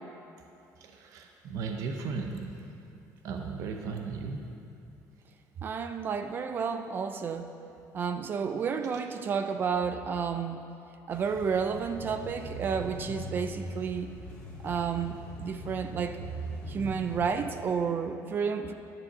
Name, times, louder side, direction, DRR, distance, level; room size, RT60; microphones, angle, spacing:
voice 1, 0.8-2.5 3.2-4.5, right 4 dB, 55° right, 3 dB, 0.8 m, -36 dB
voice 2, 5.6-7.5 7.9-10.6 11.1-14.1 14.6-16.2 16.7-18.7, right 6 dB, 30° right, 8 dB, 0.4 m, -31 dB
sound 1, 11.1-17.3, right 1 dB, 15° left, 2.0 m, -41 dB
10.5 x 7.1 x 6.6 m, 2.7 s
cardioid pair, 170°, 7 cm